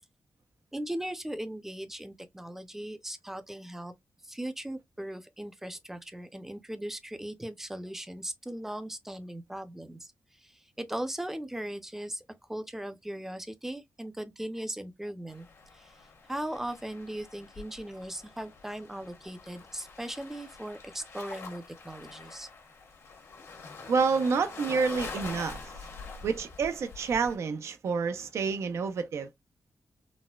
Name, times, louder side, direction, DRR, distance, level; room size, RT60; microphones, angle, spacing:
voice 1, 0.7-3.9 4.2-10.1 10.4-10.5 10.8-12.2 12.5-15.5 15.7-15.9 16.3-22.5, right 1 dB, 5° right, 0.5 m, -38 dB
sound 1, 15.3-27.3, left 4 dB, 70° left, 1.2 m, -45 dB
voice 2, 23.9-25.6 26.2-29.3, right 5 dB, 75° right, 0.5 m, -28 dB
4.1 x 2.1 x 2.3 m
wide cardioid pair, 125°, 5 cm